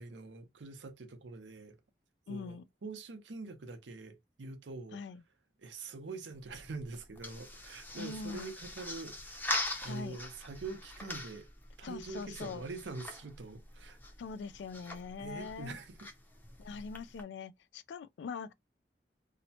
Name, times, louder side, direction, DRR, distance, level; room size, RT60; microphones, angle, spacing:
voice 1, 0.0-1.8 2.3-5.0 5.6-9.4 9.8-11.5 11.8-14.0 15.2-16.1, right 3 dB, 85° right, 0.6 m, -44 dB
voice 2, 2.3-2.6 4.9-5.2 8.0-8.5 9.9-10.2 11.8-12.6 14.2-15.8 16.6-18.5, left 5 dB, 70° left, 0.3 m, -42 dB
sound 1, 6.3-17.2, left 1 dB, 10° left, 0.6 m, -43 dB
2.7 x 2.1 x 2.7 m
head